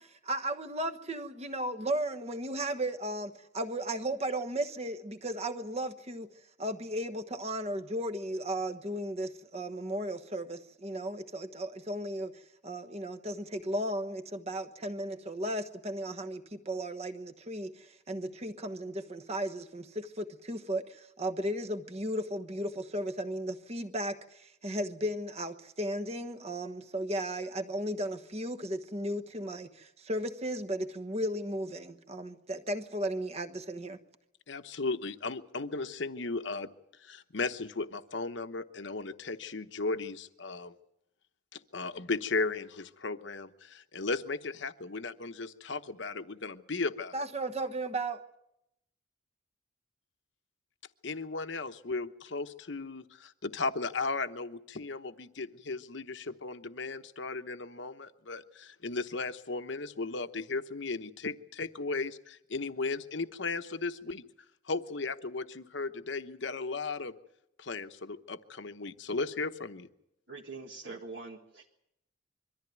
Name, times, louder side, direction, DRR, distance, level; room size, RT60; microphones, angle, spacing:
voice 1, 0.0-6.3 6.6-34.0 47.1-48.2, right 1 dB, 30° right, 1.2 m, -35 dB
voice 2, 34.5-36.7 37.0-40.7 41.5-47.1 51.0-64.2 64.7-67.1 67.6-69.9, left 3 dB, 65° left, 1.0 m, -36 dB
voice 3, 70.3-71.7, right 3 dB, 60° right, 1.7 m, -44 dB
23.0 x 14.0 x 9.4 m
head